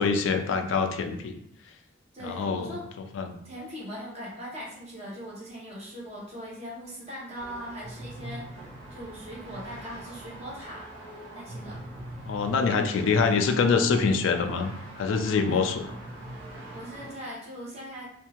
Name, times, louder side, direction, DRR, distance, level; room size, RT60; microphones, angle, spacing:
voice 1, 0.0-1.4 2.2-2.7 3.2-3.3 12.3-14.7 15.0-15.8, left 5 dB, 80° left, 6 dB, 0.3 m, -25 dB
voice 2, 2.1-2.8 3.4-10.9 11.3-11.8 15.5-15.6 16.7-18.1, equal, 35° right, -5 dB, 1.0 m, -40 dB
sound 1, 7.3-17.1, right 1 dB, 75° right, 0.8 m, -43 dB
2.6 x 2.4 x 2.8 m, 0.72 s
head